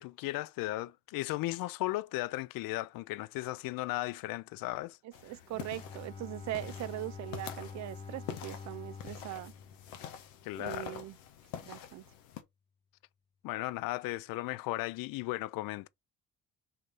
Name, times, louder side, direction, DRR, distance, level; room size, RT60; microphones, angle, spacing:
voice 1, 0.0-5.0 10.4-11.0 13.4-15.9, left 18 dB, 60° left, 0.5 m, -36 dB
sound 1, 5.1-12.4, left 9 dB, 80° left, 1.0 m, -47 dB
voice 2, 5.2-9.5 10.5-11.2 11.6-12.0, right 15 dB, 45° right, 0.5 m, -40 dB
Bowed string instrument, 5.5-10.7, left 5 dB, 15° left, 1.3 m, -47 dB
3.9 x 3.1 x 4.0 m
hypercardioid pair, 55°, 38 cm